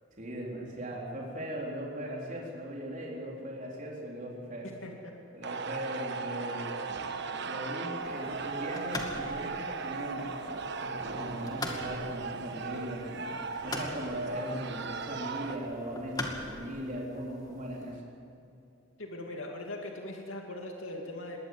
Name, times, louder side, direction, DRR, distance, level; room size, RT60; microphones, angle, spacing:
voice 1, 0.2-4.7 5.3-6.7 7.4-10.3 10.8-13.3 13.6-18.0, equal, 40° right, -2 dB, 4.0 m, -38 dB
voice 2, 4.6-5.1 19.0-21.4, left 1 dB, 85° left, 1 dB, 2.4 m, -40 dB
sound 1, 5.4-15.6, right 4 dB, 60° right, 1.2 m, -37 dB
sound 2, 8.0-17.9, left 1 dB, 20° left, 2.3 m, -43 dB
21.0 x 18.0 x 8.1 m, 2.6 s
head